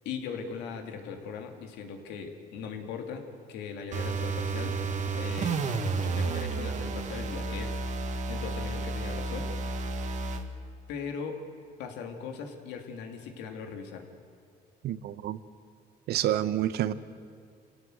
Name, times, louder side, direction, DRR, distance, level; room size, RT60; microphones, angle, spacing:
voice 1, 0.0-4.8 5.2-5.6 6.0-7.8 8.3-9.5 10.9-11.5 11.8-14.1, left 6 dB, 90° left, 4 dB, 2.9 m, -39 dB
sound 1, 3.9-10.5, right 3 dB, 45° right, 1.9 m, -31 dB
voice 2, 14.8-15.4 16.1-16.9, right 12 dB, 70° right, 13 dB, 1.1 m, -28 dB
27.0 x 18.0 x 8.0 m, 2.5 s
cardioid pair, 110°, 17 cm